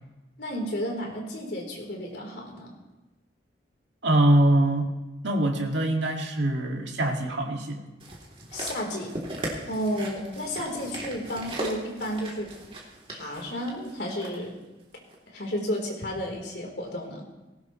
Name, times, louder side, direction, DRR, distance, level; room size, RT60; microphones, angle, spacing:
voice 1, 0.4-2.7 8.5-9.1 9.7-12.5 13.1-14.6 15.3-17.3, equal, 65° left, 0 dB, 3.7 m, -32 dB
voice 2, 4.0-4.9 5.2-7.8, right 1 dB, 80° right, 1 dB, 2.2 m, -23 dB
sound 1, 8.0-14.4 15.1-15.2, right 1 dB, 30° right, 2.9 m, -38 dB
19.0 x 18.0 x 3.2 m, 1.1 s
head